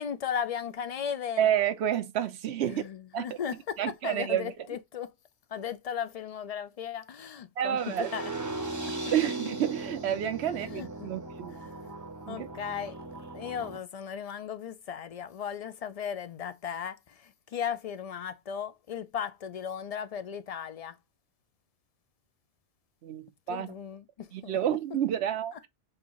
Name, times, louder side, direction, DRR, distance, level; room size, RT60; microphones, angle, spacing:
voice 1, 0.0-1.5 2.6-5.1 5.5-8.3 10.7-11.1 11.7-11.8 12.3-13.0 13.3-21.0 23.5-24.6, left 8 dB, 55° left, 0.4 m, -36 dB
voice 2, 1.4-2.8 3.1-3.4 3.8-4.5 7.6-8.1 9.1-11.6 12.3-12.5 23.0-23.7 24.3-25.5, right 10 dB, 85° right, 0.9 m, -29 dB
sound 1, 7.8-13.8, right 2 dB, 20° right, 0.6 m, -38 dB
6.6 x 2.8 x 2.9 m
omnidirectional pair, 1.1 m